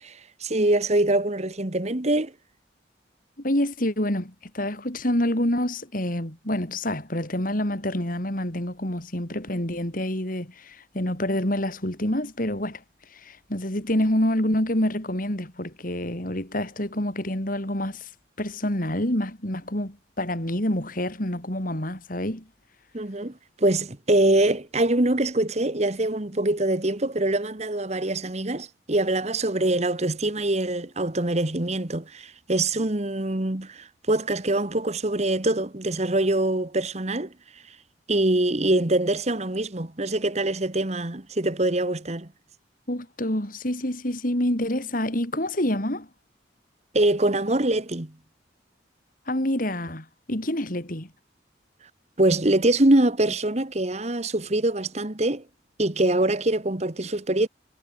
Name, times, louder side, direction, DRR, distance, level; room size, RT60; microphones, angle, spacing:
voice 1, 0.0-2.3 22.9-37.3 37.7-37.8 38.1-42.3 46.9-48.1 52.2-55.4 55.8-57.5, right 1 dB, 35° right, 1.4 m, -24 dB
voice 2, 3.4-12.8 13.1-18.1 18.4-22.5 42.9-46.1 49.3-51.1, left 1 dB, 45° left, 3.9 m, -27 dB
head